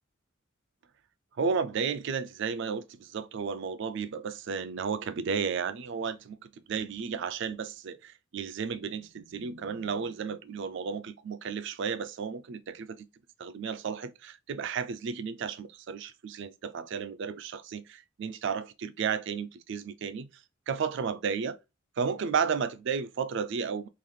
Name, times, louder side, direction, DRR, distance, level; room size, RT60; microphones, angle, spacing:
voice 1, 1.3-13.1 13.4-21.6 22.0-23.9, right 6 dB, 60° right, 0.4 m, -33 dB
3.8 x 2.4 x 3.2 m
head